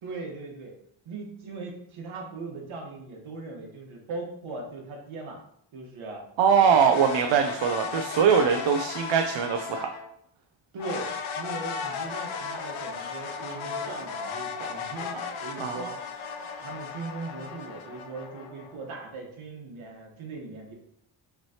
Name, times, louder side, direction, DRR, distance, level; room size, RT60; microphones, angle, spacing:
voice 1, 0.0-0.7 1.0-5.4 5.7-6.2 6.6-6.9 10.7-16.0 16.6-20.7, right 3 dB, 90° right, 0 dB, 1.3 m, -39 dB
voice 2, 6.4-9.9 15.6-15.8, right 7 dB, 65° right, 5 dB, 0.5 m, -22 dB
sound 1, 6.8-10.1 10.8-19.0, left 5 dB, 80° left, 0.7 m, -35 dB
5.9 x 3.1 x 2.8 m, 0.71 s
wide cardioid pair, 140°, 48 cm